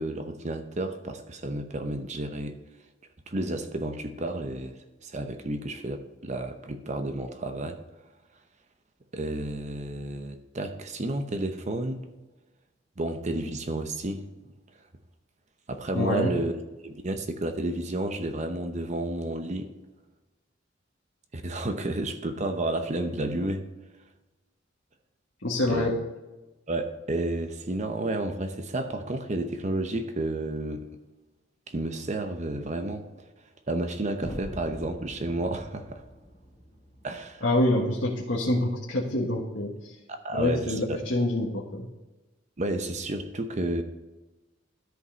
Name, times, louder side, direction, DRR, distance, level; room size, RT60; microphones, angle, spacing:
voice 1, 0.0-2.5 3.3-4.8 5.0-7.8 9.1-12.0 13.0-14.3 15.7-16.5 16.8-19.7 21.3-23.6 25.7-25.9 26.7-30.9 31.7-33.1 33.7-36.0 37.0-37.4 40.1-41.0 42.6-43.8, right 2 dB, 35° right, 0.8 m, -31 dB
voice 2, 15.9-16.5 25.4-25.9 37.4-39.9 40.3-41.9, left 1 dB, 70° left, 1.6 m, -26 dB
sound 1, 34.2-38.2, equal, 20° left, 1.2 m, -43 dB
13.0 x 5.5 x 4.0 m
head